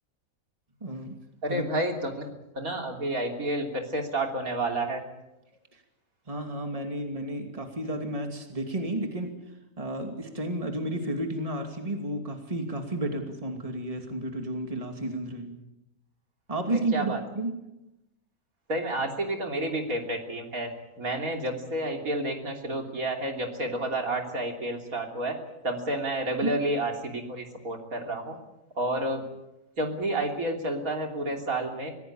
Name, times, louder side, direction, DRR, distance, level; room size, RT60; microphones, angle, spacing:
voice 1, 0.8-1.2 1.5-1.6 5.7-5.8 6.3-9.3 9.8-15.5 16.5-17.6 26.4-26.5, right 1 dB, 25° right, 4 dB, 2.7 m, -32 dB
voice 2, 1.4-2.1 2.6-5.0 16.7-17.2 18.7-20.7 21.0-25.4 25.6-28.4 28.8-29.2 29.8-31.9, right 1 dB, 70° right, 3 dB, 3.6 m, -30 dB
24.5 x 17.0 x 8.7 m, 0.90 s
omnidirectional pair, 1.5 m